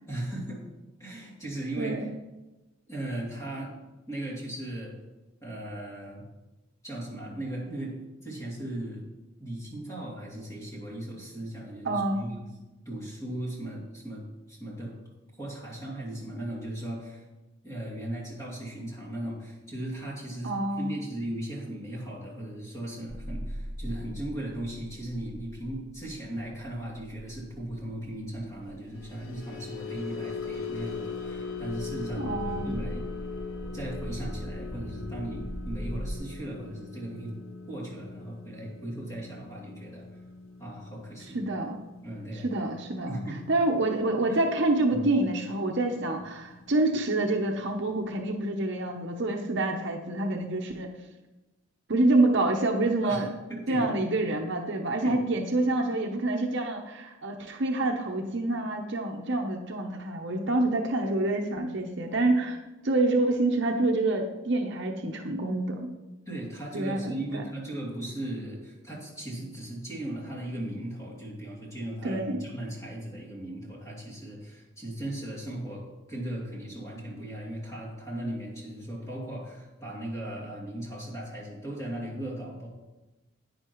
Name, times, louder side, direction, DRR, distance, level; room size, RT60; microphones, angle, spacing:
voice 1, 0.1-0.6 1.0-2.1 2.9-3.7 4.1-5.0 5.4-6.2 6.8-7.9 8.2-9.0 9.4-12.4 12.8-15.0 15.4-17.2 17.6-33.0 33.7-37.4 37.7-40.1 40.6-41.4 42.0-42.5 43.0-43.4 44.3-44.4 44.9-45.1 53.0-53.2 53.5-53.9 55.0-55.2 66.3-75.8 76.1-82.7, right 1 dB, 15° left, -5 dB, 2.7 m, -37 dB
voice 2, 11.9-12.3 20.4-21.0 32.2-32.8 41.3-41.8 42.4-43.2 43.5-50.9 51.9-53.3 53.7-62.6 62.8-65.9 66.7-67.1 72.0-72.4, right 2 dB, 55° right, 2 dB, 0.8 m, -27 dB
sound 1, 23.1-36.2, equal, 35° right, 2.7 m, -40 dB
sound 2, 28.8-45.2 45.6-45.9 46.2-46.4, left 5 dB, 75° left, 1.1 m, -41 dB
10.5 x 9.5 x 3.1 m, 1.1 s
head